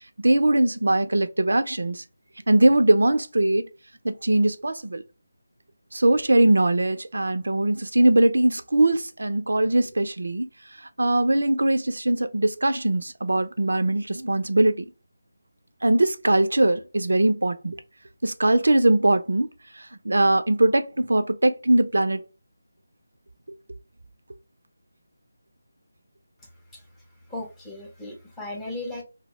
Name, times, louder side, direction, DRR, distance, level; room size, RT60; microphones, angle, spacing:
voice 1, 0.2-2.0 2.5-3.7 4.0-5.0 5.9-10.5 11.0-14.8 15.8-17.8 18.2-19.5 19.8-22.2, right 1 dB, 80° right, 0.4 m, -21 dB
voice 2, 27.3-29.0, left 2 dB, 5° left, 0.5 m, -36 dB
2.6 x 2.0 x 2.9 m
figure-of-eight pair, 165°, 0 cm